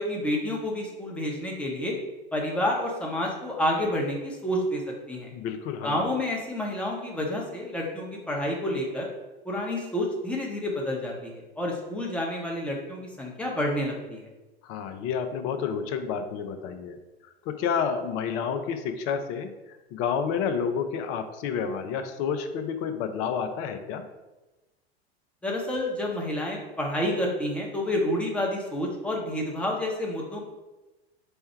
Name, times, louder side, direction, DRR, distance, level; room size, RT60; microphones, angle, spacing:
voice 1, 0.0-1.9 2.3-5.3 5.8-9.1 9.4-14.3 25.4-30.5, left 1 dB, 5° left, -2 dB, 0.9 m, -29 dB
voice 2, 5.3-6.0 14.6-17.0 17.5-19.5 19.9-24.0, left 6 dB, 45° left, 8 dB, 0.5 m, -29 dB
4.4 x 2.2 x 4.4 m, 1.1 s
figure-of-eight pair, 80°, 32 cm